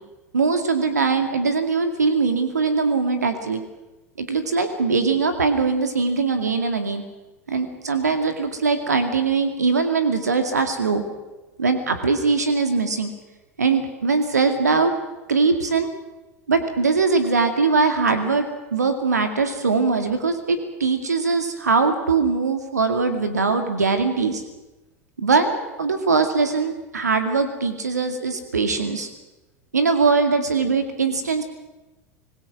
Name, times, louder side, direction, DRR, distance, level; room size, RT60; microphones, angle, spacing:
voice 1, 0.3-3.6 4.2-7.0 7.5-11.0 11.6-13.1 13.6-14.9 15.3-15.9 16.5-24.4 25.2-29.1 29.7-31.4, right 4 dB, 75° right, 7 dB, 2.1 m, -21 dB
25.5 x 20.5 x 6.1 m, 1.1 s
figure-of-eight pair, 80°, 9 cm